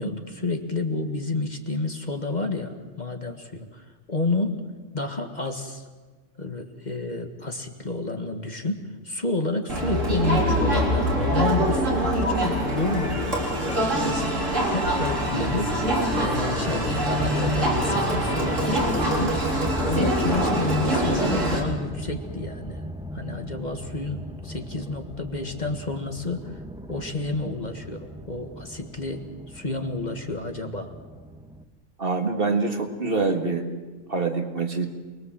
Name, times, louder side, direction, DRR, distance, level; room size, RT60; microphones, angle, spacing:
voice 1, 0.0-4.6 4.9-5.8 6.4-19.4 19.8-22.8 23.1-26.6 26.9-30.9, left 3 dB, 35° left, 5 dB, 1.8 m, -30 dB
Crowd, 9.7-21.6, equal, 80° right, 4.4 m, -24 dB
sound 1, 15.3-31.6, equal, 5° right, 1.2 m, -35 dB
voice 2, 32.0-33.7 34.1-34.9, right 4 dB, 45° right, 4 dB, 2.2 m, -25 dB
28.5 x 21.5 x 7.7 m, 1.3 s
omnidirectional pair, 1.3 m